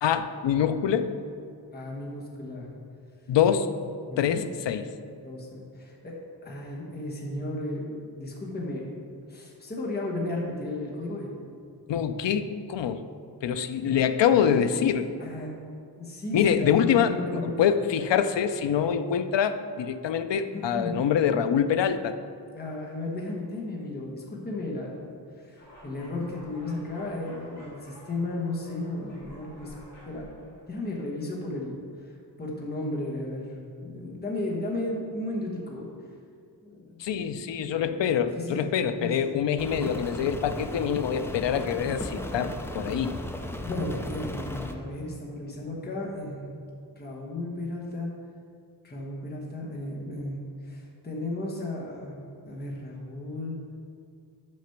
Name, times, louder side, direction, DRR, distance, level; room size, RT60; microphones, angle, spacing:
voice 1, 0.0-1.1 3.3-3.7 4.2-4.9 11.9-13.0 13.4-15.1 16.3-22.2 37.0-43.2, left 8 dB, 85° left, 10 dB, 0.6 m, -25 dB
voice 2, 1.7-2.7 4.1-4.4 5.2-6.1 6.4-9.0 9.3-11.5 13.8-14.0 15.2-15.6 16.0-17.5 20.5-21.0 22.5-25.1 25.4-29.7 30.1-35.9 36.6-37.6 37.8-39.4 43.6-46.5 47.0-48.1 48.8-52.2 52.4-53.6, left 2 dB, 25° left, -3 dB, 1.1 m, -34 dB
sound 1, 25.6-30.7, equal, 40° left, 1.9 m, -50 dB
Rain, 39.6-44.7, left 1 dB, 5° left, 0.3 m, -36 dB
6.3 x 5.9 x 5.7 m, 2.3 s
wide cardioid pair, 175°, 42 cm